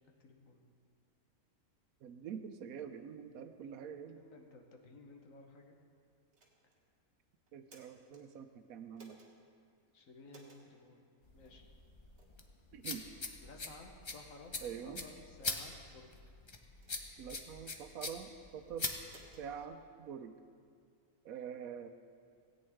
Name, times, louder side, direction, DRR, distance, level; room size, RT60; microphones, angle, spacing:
voice 1, 0.2-0.7 4.1-5.8 9.9-11.1 11.3-11.7 13.4-16.2, left 3 dB, 65° left, 2 dB, 1.4 m, -56 dB
voice 2, 2.0-4.2 7.5-9.2 12.7-13.0 14.6-15.0 17.2-18.9 19.4-20.3 21.2-21.9, right 8 dB, 75° right, 8 dB, 1.0 m, -45 dB
sound 1, 6.3-6.8 7.5-8.2 8.9-9.3 10.3-10.6 11.4-11.6 12.2-12.4 12.9-13.1 13.7-13.8 14.4-14.8 15.5-15.9 16.7-17.3 17.8-18.3 19.0-19.5, right 3 dB, 50° right, 1.6 m, -62 dB
sound 2, 11.2-19.6, left 3 dB, 40° left, 0.4 m, -43 dB
17.0 x 8.7 x 3.5 m, 2.2 s
omnidirectional pair, 1.5 m